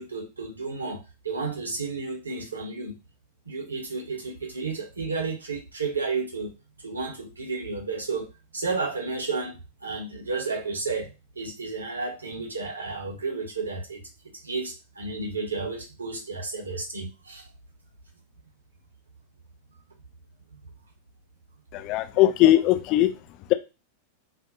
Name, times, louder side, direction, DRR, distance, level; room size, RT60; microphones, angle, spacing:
voice 1, 0.0-2.9 3.5-6.5 6.8-14.0 14.4-17.5, right 4 dB, 75° right, 1 dB, 0.7 m, -32 dB
voice 2, 21.7-23.1, left 14 dB, 40° left, 7 dB, 0.3 m, -19 dB
2.4 x 2.1 x 2.6 m, 0.27 s
figure-of-eight pair, 90°, 0 cm